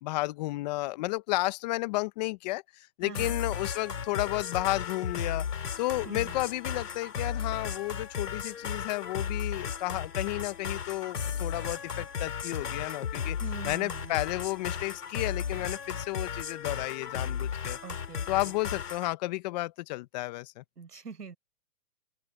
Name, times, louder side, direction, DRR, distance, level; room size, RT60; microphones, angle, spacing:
voice 1, 0.0-5.5 5.8-13.4 13.6-17.8 18.3-20.6, left 20 dB, 25° left, 1.1 m, -32 dB
voice 2, 3.0-3.4 6.0-6.4 13.4-14.1 17.8-18.5 20.8-21.4, right 5 dB, 90° right, 7.6 m, -43 dB
sound 1, 3.1-19.1, left 7 dB, 80° left, 3.1 m, -35 dB
open air
hypercardioid pair, 145°, 46 cm